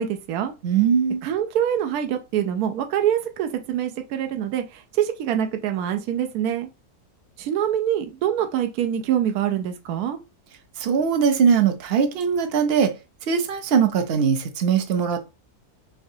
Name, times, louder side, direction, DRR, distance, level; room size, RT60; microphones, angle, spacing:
voice 1, 0.0-0.5 1.2-6.7 7.4-10.2, right 10 dB, 80° right, 1.1 m, -25 dB
voice 2, 0.6-1.2 10.8-12.9 13.3-15.3, right 7 dB, 55° right, 0.7 m, -21 dB
4.8 x 3.3 x 2.7 m
omnidirectional pair, 1.6 m